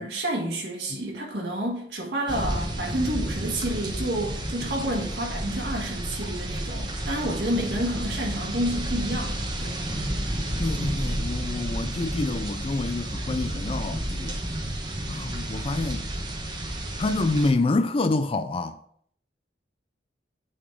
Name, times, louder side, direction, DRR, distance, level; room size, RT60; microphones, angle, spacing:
voice 1, 0.0-9.8, right 1 dB, 60° right, 1.6 m, -29 dB
sound 1, 2.3-17.5, right 1 dB, 25° right, 1.0 m, -31 dB
voice 2, 10.6-14.4 15.1-16.1 17.0-18.8, left 2 dB, 30° left, 0.4 m, -27 dB
9.1 x 4.1 x 4.6 m
head